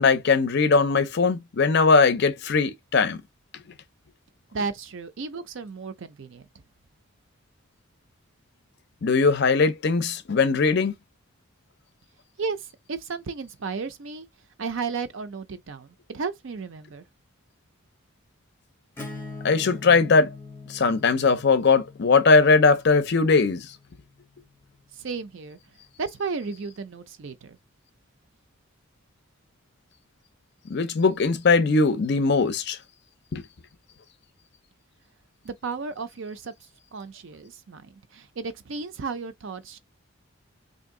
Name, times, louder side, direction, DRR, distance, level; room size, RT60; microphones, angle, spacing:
voice 1, 0.0-3.2 9.0-10.9 19.4-20.3 20.7-23.7 30.7-32.8 33.3-33.4, left 4 dB, 50° left, 0.5 m, -20 dB
voice 2, 4.5-6.5 12.4-14.3 14.6-17.0 25.0-25.6 26.0-27.6 35.4-36.5 36.9-39.8, right 4 dB, 60° right, 0.5 m, -34 dB
Acoustic guitar / Strum, 19.0-24.5, left 3 dB, 10° left, 0.6 m, -42 dB
3.4 x 2.7 x 3.7 m
head